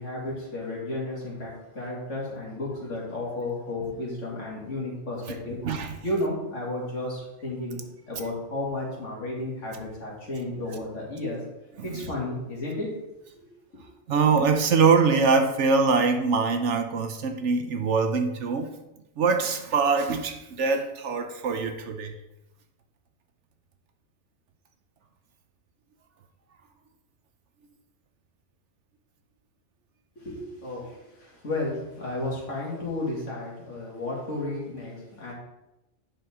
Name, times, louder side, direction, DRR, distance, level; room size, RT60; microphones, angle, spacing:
voice 1, 0.0-5.6 6.0-7.8 8.1-11.4 11.8-12.9 13.3-13.4 13.7-13.8 30.2-35.3, left 2 dB, 65° left, -4 dB, 2.5 m, -33 dB
voice 2, 14.1-18.7 19.2-22.1, right 4 dB, 65° right, 6 dB, 1.0 m, -23 dB
8.5 x 5.8 x 3.6 m, 0.93 s
omnidirectional pair, 1.3 m